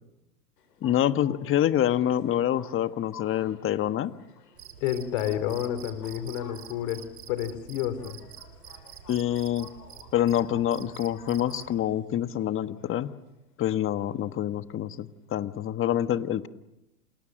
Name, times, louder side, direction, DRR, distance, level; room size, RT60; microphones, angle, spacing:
sound 1, 0.6-15.4, left 6 dB, 80° left, 6.8 m, -53 dB
voice 1, 0.8-4.1 9.1-9.7 10.1-13.1 13.6-16.5, left 11 dB, 25° left, 11 dB, 1.4 m, -26 dB
Cricket, 4.6-11.7, right 9 dB, 75° right, 4.1 m, -47 dB
voice 2, 4.8-7.0 7.3-8.2, left 11 dB, 55° left, 12 dB, 4.1 m, -30 dB
29.0 x 28.5 x 6.5 m, 0.90 s
hypercardioid pair, 110°, 47 cm